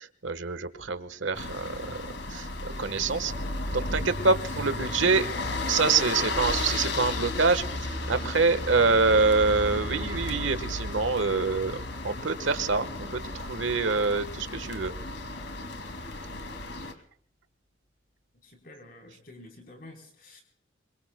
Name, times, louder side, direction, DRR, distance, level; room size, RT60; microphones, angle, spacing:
voice 1, 0.2-3.3 3.7-5.3 5.7-14.9, right 4 dB, 90° right, 12 dB, 1.3 m, -26 dB
sound 1, 1.3-16.9, left 2 dB, 80° left, 2.4 m, -34 dB
voice 2, 18.4-20.4, left 2 dB, 50° left, 3 dB, 3.8 m, -49 dB
26.0 x 23.0 x 2.2 m, 0.62 s
head